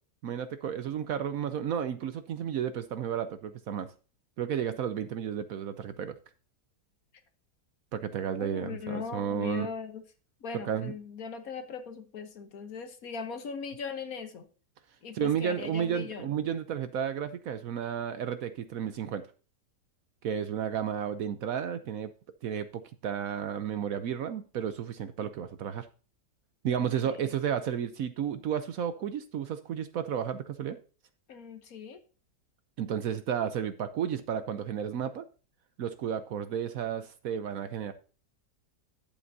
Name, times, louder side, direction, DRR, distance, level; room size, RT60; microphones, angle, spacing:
voice 1, 0.2-3.9 4.4-6.1 7.9-9.7 10.5-10.9 15.1-19.3 20.2-22.1 22.4-25.9 26.6-30.8 32.8-35.3 35.8-37.9, right 8 dB, 65° right, 1.0 m, -32 dB
voice 2, 8.4-10.0 10.4-14.5 15.0-16.3 26.8-27.3 31.3-32.0, left 5 dB, 60° left, 1.4 m, -39 dB
11.0 x 8.5 x 2.7 m
omnidirectional pair, 1.8 m